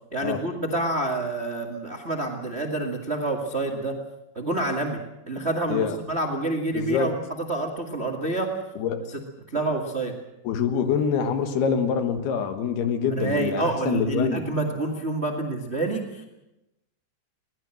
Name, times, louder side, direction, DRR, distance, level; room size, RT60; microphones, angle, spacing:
voice 1, 0.1-4.0 4.3-5.0 5.3-7.1 7.4-8.5 9.5-10.1 13.1-16.2, right 2 dB, 50° right, 3 dB, 0.7 m, -27 dB
voice 2, 6.7-7.1 8.8-9.0 10.4-14.5, left 6 dB, 70° left, 8 dB, 3.1 m, -25 dB
22.0 x 18.5 x 7.7 m, 0.92 s
omnidirectional pair, 5.0 m